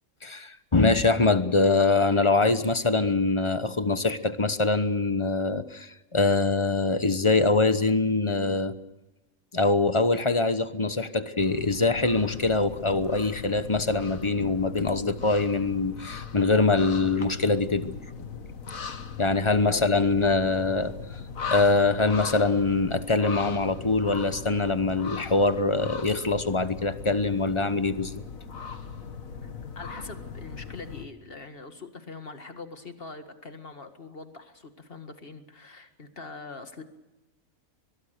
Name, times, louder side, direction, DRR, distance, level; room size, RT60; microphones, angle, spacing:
voice 1, 0.2-8.7 9.5-18.3 19.2-21.0 21.5-28.1, left 3 dB, 25° left, 12 dB, 1.0 m, -24 dB
sound 1, 11.4-31.1, left 5 dB, 70° left, 2.0 m, -39 dB
voice 2, 29.4-36.8, left 3 dB, 40° left, 7 dB, 2.0 m, -43 dB
23.0 x 22.0 x 6.7 m, 1.0 s
omnidirectional pair, 1.5 m